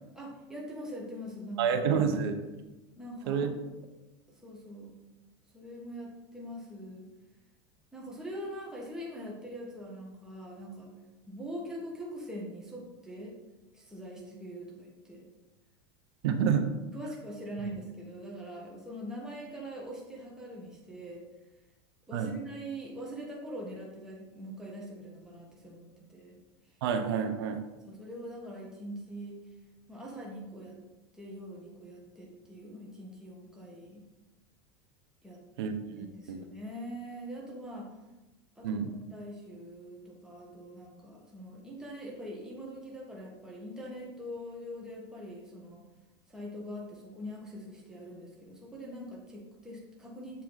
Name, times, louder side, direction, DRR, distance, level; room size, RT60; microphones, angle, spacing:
voice 1, 0.1-2.1 2.9-3.5 4.3-4.9 5.5-7.1 7.9-10.9 11.3-13.4 13.7-15.3 16.9-21.3 22.1-26.4 27.9-29.4 29.9-30.8 31.1-34.0 35.2-35.4 36.0-37.9 38.6-45.8 46.3-50.4, equal, 5° right, -3 dB, 1.5 m, -43 dB
voice 2, 1.6-2.4 3.3-3.5 16.2-16.7 17.6-17.7 22.1-22.4 26.8-27.6 35.6-36.4 38.6-38.9, right 7 dB, 75° right, 7 dB, 0.9 m, -29 dB
7.6 x 4.3 x 4.0 m, 1.1 s
supercardioid pair, 115°, 13 cm